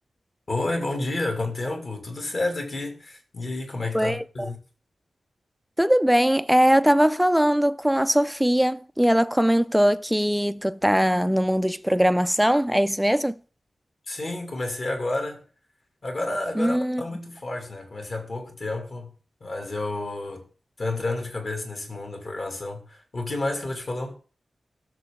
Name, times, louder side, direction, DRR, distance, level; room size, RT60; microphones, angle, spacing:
voice 1, 0.5-4.6 14.1-15.4 16.0-19.1 19.4-20.4 20.8-24.2, left 2 dB, 45° left, 2.4 m, -30 dB
voice 2, 3.9-4.5 5.8-13.3 16.6-17.0, equal, ahead, 0.4 m, -21 dB
16.5 x 6.7 x 3.7 m
wide cardioid pair, 150°, 0 cm